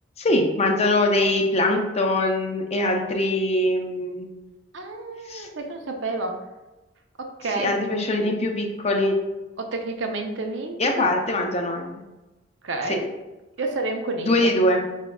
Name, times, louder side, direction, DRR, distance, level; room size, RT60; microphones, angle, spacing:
voice 1, 0.2-4.3 5.3-5.5 7.6-9.2 10.8-11.9 12.9-13.0 14.2-14.8, left 1 dB, 35° left, 3 dB, 0.5 m, -22 dB
voice 2, 4.7-6.5 7.2-7.7 8.2-8.3 9.6-11.1 12.6-13.1 13.6-14.5, right 2 dB, 80° right, 4 dB, 0.6 m, -30 dB
5.1 x 3.5 x 2.2 m, 1.1 s
head